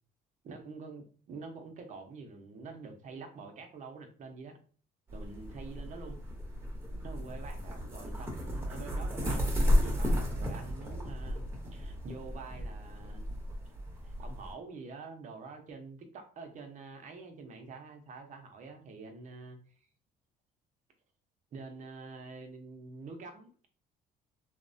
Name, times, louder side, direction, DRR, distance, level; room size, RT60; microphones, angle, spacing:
voice 1, 0.4-4.6 5.1-6.2 7.0-11.4 11.7-13.3 14.0-19.6 21.5-23.7, right 4 dB, 45° right, 4 dB, 0.6 m, -46 dB
sound 1, 5.1-14.5, equal, 15° right, 0.8 m, -33 dB
2.9 x 2.1 x 2.6 m, 0.42 s
cardioid pair, 110°, 17 cm